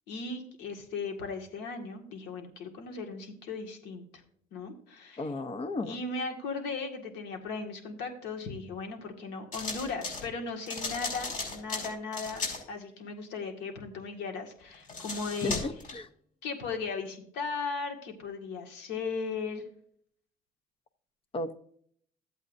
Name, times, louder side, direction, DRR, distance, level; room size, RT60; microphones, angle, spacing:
voice 1, 0.1-4.2 4.5-5.2 5.8-15.6 16.4-19.6, left 4 dB, 85° left, 3 dB, 1.9 m, -37 dB
voice 2, 5.2-6.0 15.4-16.1 21.3-21.6, left 2 dB, 35° left, 11 dB, 0.8 m, -34 dB
sound 1, 9.5-10.2 10.7-12.6 14.7-15.9, left 3 dB, 55° left, 4.5 m, -36 dB
13.5 x 8.1 x 2.6 m, 0.62 s
cardioid pair, 110°, 17 cm